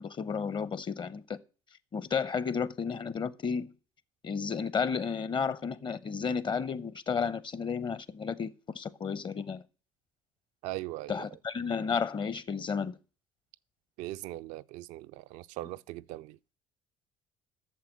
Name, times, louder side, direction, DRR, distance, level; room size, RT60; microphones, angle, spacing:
voice 1, 0.0-1.4 1.9-3.7 4.2-9.6 11.1-13.0, left 6 dB, 35° left, 0.8 m, -32 dB
voice 2, 10.6-11.2 14.0-16.4, right 17 dB, 65° right, 0.4 m, -40 dB
8.5 x 6.9 x 7.3 m
hypercardioid pair, 60°, 13 cm